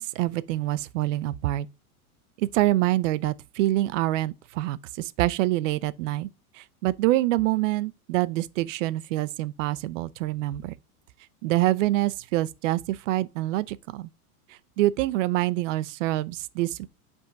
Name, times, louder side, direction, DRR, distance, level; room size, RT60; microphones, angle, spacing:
voice 1, 0.0-1.7 2.4-6.3 6.5-10.7 11.4-14.1 14.5-16.9, right 16 dB, 55° right, 0.6 m, -26 dB
7.8 x 3.6 x 5.1 m
supercardioid pair, 170°, 45 cm